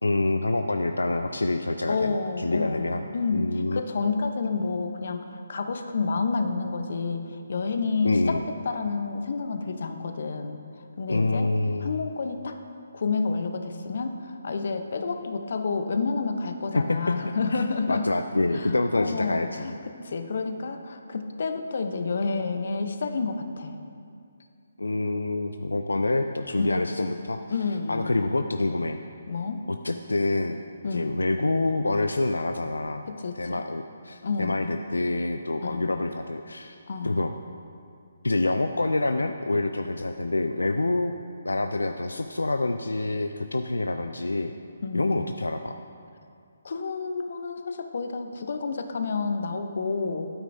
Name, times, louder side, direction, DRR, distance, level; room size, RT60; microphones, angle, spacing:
voice 1, 0.0-3.8 8.0-8.4 11.1-12.0 16.7-19.6 24.8-27.4 27.9-29.0 29.7-30.6 30.9-33.1 33.3-36.8 37.0-37.4 38.2-41.1 41.4-44.5 44.9-45.8, left 2 dB, 90° left, 7 dB, 0.4 m, -27 dB
voice 2, 1.9-10.6 11.0-11.5 11.8-12.6 12.9-18.1 18.5-23.8 26.6-26.9 27.5-28.2 29.3-29.7 30.8-31.1 33.1-33.6 34.2-34.6 35.6-35.9 36.9-37.2 44.8-45.2 46.6-50.3, left 4 dB, 60° left, 7 dB, 0.7 m, -29 dB
12.0 x 9.2 x 2.7 m, 2.4 s
figure-of-eight pair, 145°, 0 cm